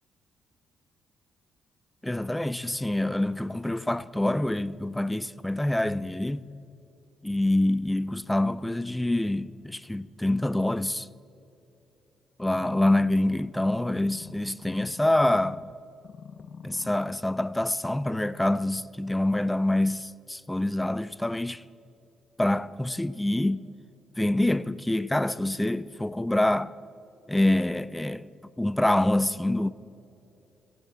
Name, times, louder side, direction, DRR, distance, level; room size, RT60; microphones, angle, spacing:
voice 1, 2.0-6.5 7.2-11.1 12.4-15.6 16.6-21.6 22.4-23.7 24.2-26.7 27.3-28.3 28.6-29.7, left 1 dB, 10° left, 0.4 m, -26 dB
sound 1, 12.6-15.7 16.0-17.0 17.6-17.7, left 6 dB, 55° left, 0.6 m, -45 dB
17.5 x 15.5 x 3.6 m
cardioid pair, 90°, 0 cm